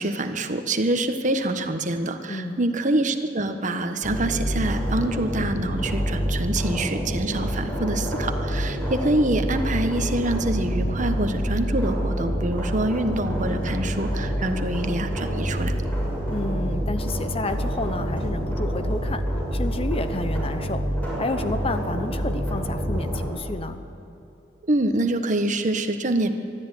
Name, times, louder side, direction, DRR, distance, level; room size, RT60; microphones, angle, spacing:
voice 1, 0.0-15.7 24.7-26.3, right 1 dB, 45° right, 8 dB, 1.3 m, -25 dB
voice 2, 2.3-2.6 16.3-20.9 21.2-23.8, left 2 dB, 35° left, 10 dB, 1.0 m, -30 dB
sound 1, 4.0-23.3, equal, 10° left, 6.7 m, -27 dB
23.0 x 13.0 x 10.0 m, 2.8 s
head